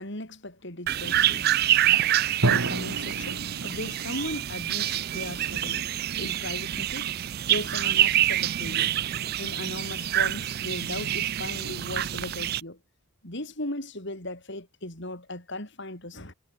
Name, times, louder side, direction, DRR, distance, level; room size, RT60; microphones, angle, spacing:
voice 1, 0.0-1.6 2.4-5.9 6.2-7.1 7.5-8.9 9.4-12.8 13.2-16.3, left 1 dB, 50° left, 4.5 m, -37 dB
sound 1, 0.9-12.6, right 12 dB, 45° right, 0.3 m, -26 dB
Drum, 2.4-4.3, right 2 dB, 70° right, 1.9 m, -30 dB
head